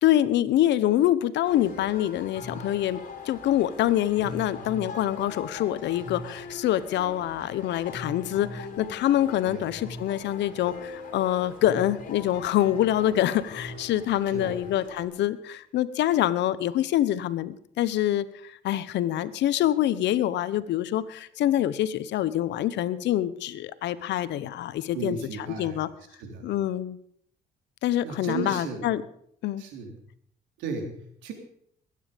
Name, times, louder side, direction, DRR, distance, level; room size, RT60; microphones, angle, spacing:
voice 1, 0.0-3.0 3.2-25.2 25.6-25.9 26.4-27.0 27.8-29.0 29.4-29.6, left 12 dB, 75° left, 16 dB, 1.0 m, -25 dB
sound 1, 1.4-15.1, left 3 dB, 45° left, 3.8 m, -41 dB
voice 2, 24.9-25.9 26.2-26.5 28.0-28.9 29.6-29.9 30.6-31.3, right 4 dB, 85° right, 4 dB, 3.4 m, -35 dB
22.0 x 9.5 x 5.2 m, 0.66 s
cardioid pair, 90°, 19 cm